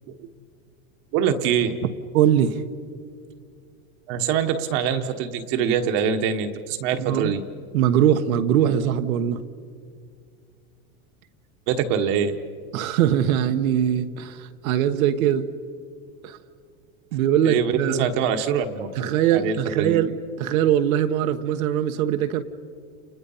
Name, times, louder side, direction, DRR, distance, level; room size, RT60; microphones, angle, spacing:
voice 1, 1.1-1.8 4.1-7.4 11.7-12.3 17.4-20.0, right 7 dB, 40° right, 7 dB, 1.3 m, -24 dB
voice 2, 2.1-2.6 7.0-7.3 7.7-9.4 12.7-15.5 16.2-16.4 17.1-18.1 19.0-22.4, right 10 dB, 75° right, 8 dB, 1.4 m, -21 dB
30.0 x 30.0 x 5.7 m, 2.2 s
supercardioid pair, 175°, 42 cm